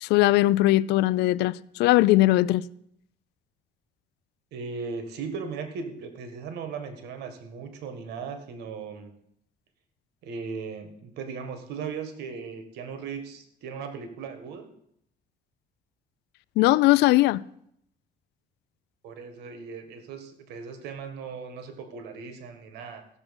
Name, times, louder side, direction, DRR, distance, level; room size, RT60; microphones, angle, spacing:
voice 1, 0.0-2.6 16.6-17.4, left 17 dB, 85° left, 0.4 m, -20 dB
voice 2, 4.5-9.1 10.2-14.7 19.0-23.1, right 5 dB, 80° right, 1.7 m, -37 dB
15.5 x 7.1 x 5.4 m
cardioid pair, 110°, 17 cm